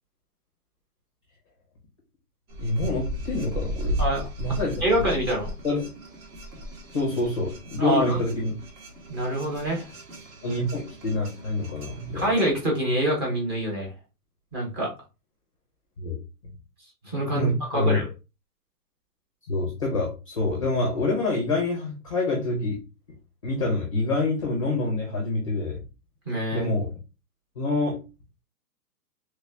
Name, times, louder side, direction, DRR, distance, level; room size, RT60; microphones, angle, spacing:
sound 1, 2.5-12.5, equal, 60° right, 1.8 m, -36 dB
voice 1, 2.6-4.0 4.4-5.0 5.6-5.9 6.9-8.5 10.4-12.2 16.0-16.1 17.3-18.0 19.5-22.8 23.4-25.8 26.5-26.9 27.6-28.0, left 2 dB, 20° left, -1 dB, 0.5 m, -26 dB
voice 2, 4.8-5.5 7.8-8.2 9.1-9.9 12.1-13.9 14.5-14.9 17.0-18.1 26.3-26.7, right 1 dB, 15° right, -1 dB, 0.7 m, -25 dB
3.2 x 2.6 x 3.3 m, 0.29 s
hypercardioid pair, 170°, 47 cm